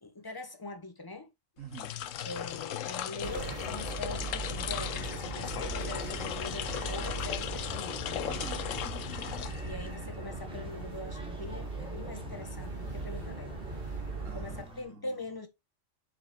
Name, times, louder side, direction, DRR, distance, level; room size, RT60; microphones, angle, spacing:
voice 1, 0.0-1.3 2.2-8.3 9.6-13.6 14.3-15.5, left 2 dB, 20° left, 1.3 m, -43 dB
sound 1, 1.6-10.0, left 11 dB, 80° left, 1.0 m, -37 dB
voice 2, 1.6-1.9 8.2-9.0 14.2-15.3, right 7 dB, 75° right, 1.7 m, -47 dB
sound 2, 3.2-14.6, right 3 dB, 45° right, 2.5 m, -39 dB
sound 3, 5.4-14.8, equal, 5° right, 1.3 m, -51 dB
5.4 x 5.2 x 5.2 m
omnidirectional pair, 1.3 m